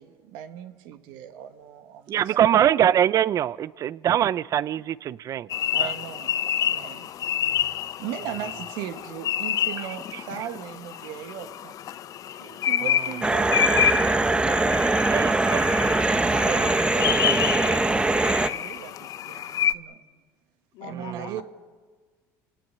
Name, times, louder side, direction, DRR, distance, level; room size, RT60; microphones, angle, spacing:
voice 1, 0.0-2.4 5.7-6.3 6.5-7.1 7.6-11.8 12.4-15.4 16.2-20.0 20.8-21.4, right 10 dB, 75° right, 7 dB, 1.9 m, -38 dB
voice 2, 2.1-5.5 5.8-5.9 6.8-6.9 15.0-15.9 16.1-16.7 21.0-21.3, right 10 dB, 45° right, 18 dB, 0.7 m, -24 dB
sound 1, 5.5-19.7, left 10 dB, 50° left, 0.8 m, -28 dB
sound 2, 13.2-18.5, right 2 dB, 15° right, 1.2 m, -22 dB
voice 3, 20.7-21.4, left 11 dB, 70° left, 2 dB, 3.6 m, -42 dB
29.5 x 18.5 x 6.9 m, 1.4 s
supercardioid pair, 100°, 8 cm